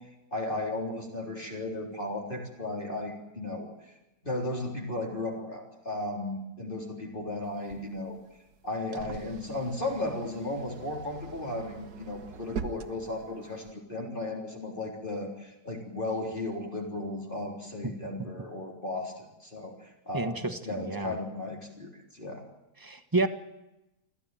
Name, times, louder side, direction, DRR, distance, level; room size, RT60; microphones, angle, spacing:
voice 1, 0.0-3.9 4.2-8.2 8.6-22.4, left 2 dB, 35° left, 0 dB, 3.9 m, -35 dB
sound 1, 7.4-13.7, right 6 dB, 90° right, 1.7 m, -44 dB
voice 2, 20.1-21.2 22.8-23.3, right 2 dB, 15° right, 10 dB, 1.3 m, -30 dB
26.0 x 15.0 x 9.2 m, 0.95 s
omnidirectional pair, 1.6 m